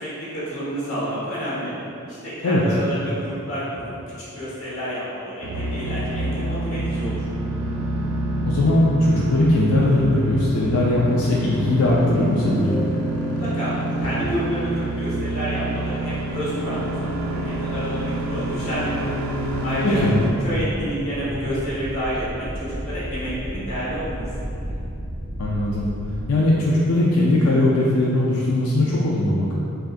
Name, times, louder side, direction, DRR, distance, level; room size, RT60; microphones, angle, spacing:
voice 1, 0.0-1.7 2.1-7.3 13.2-19.1 19.6-20.0 20.4-24.3, equal, 70° left, -9 dB, 1.2 m, -29 dB
sound 1, 5.4-20.3, right 1 dB, 80° right, 0.5 m, -27 dB
voice 2, 8.5-12.8 19.8-20.2 25.4-25.9 26.3-29.5, left 1 dB, 85° left, -4 dB, 0.4 m, -19 dB
sound 2, 12.4-13.5, left 2 dB, 30° left, 0.5 m, -31 dB
sound 3, 17.3-26.3, equal, 30° right, 0.4 m, -35 dB
6.1 x 2.4 x 2.4 m, 2.8 s
head